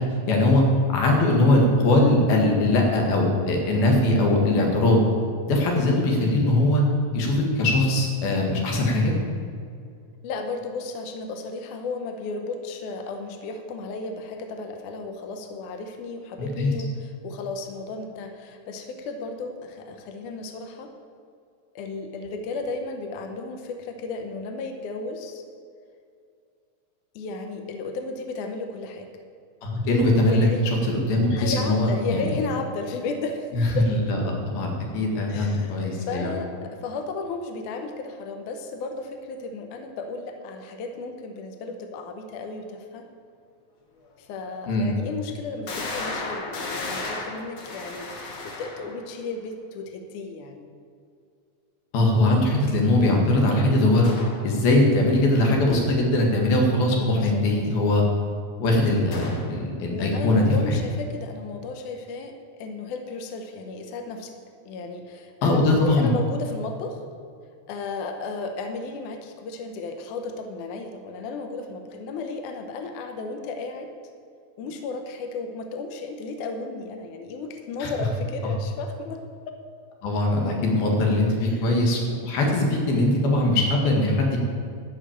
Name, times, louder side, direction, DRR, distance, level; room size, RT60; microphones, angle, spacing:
voice 1, 0.3-0.6 0.9-5.0 5.5-6.8 7.1-9.1 16.4-16.7 29.6-30.5 30.9-32.3 33.5-36.3 44.7-44.9 51.9-54.1 54.4-58.0 58.6-60.8 65.4-66.1 77.8-77.9 80.0-84.4, left 1 dB, 90° left, 0 dB, 3.8 m, -21 dB
voice 2, 10.2-20.9 21.8-25.4 27.2-29.1 30.2-30.7 31.4-33.5 33.8-33.9 35.3-35.8 36.1-43.1 44.2-48.1 48.4-50.7 57.2-57.4 59.9-64.3 64.7-67.0 67.7-73.9 74.6-79.6 81.4-81.7, left 3 dB, 70° left, 5 dB, 2.2 m, -34 dB
sound 1, 44.0-44.1 44.7-44.8 45.7-49.1 54.0-54.4 59.1-59.6, left 3 dB, 55° left, 2.6 m, -34 dB
13.0 x 5.8 x 8.8 m, 2.3 s
omnidirectional pair, 4.1 m